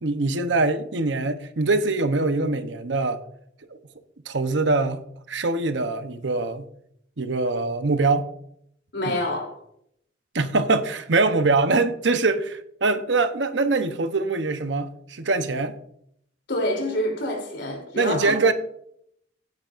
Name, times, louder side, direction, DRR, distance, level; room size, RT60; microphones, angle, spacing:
voice 1, 0.0-3.2 4.3-5.0 5.3-6.7 7.2-8.3 9.0-9.2 10.3-15.8 18.0-18.5, right 3 dB, 80° right, 0.9 m, -23 dB
voice 2, 8.9-9.5 16.5-18.5, left 1 dB, 75° left, 3.2 m, -27 dB
16.5 x 9.4 x 2.6 m
head